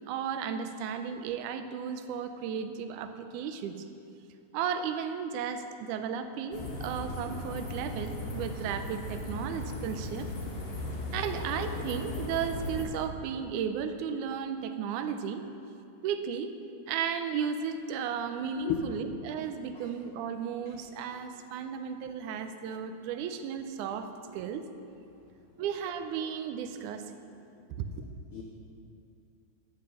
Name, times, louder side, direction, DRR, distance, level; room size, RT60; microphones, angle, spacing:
voice 1, 0.1-3.8 4.5-10.3 11.1-15.5 16.0-16.5 16.9-24.7 25.6-27.1 27.7-27.9, right 7 dB, 85° right, 8 dB, 2.1 m, -34 dB
sound 1, 6.5-12.8, left 1 dB, 70° left, 0.8 m, -37 dB
voice 2, 18.6-19.0 19.3-19.4 19.7-19.9 20.6-20.7 21.1-21.2 21.6-21.7 22.8-22.9 25.1-25.6 27.5-27.8 28.3-28.4, left 6 dB, 85° left, -1 dB, 1.2 m, -37 dB
9.7 x 5.9 x 6.5 m, 2.6 s
omnidirectional pair, 3.4 m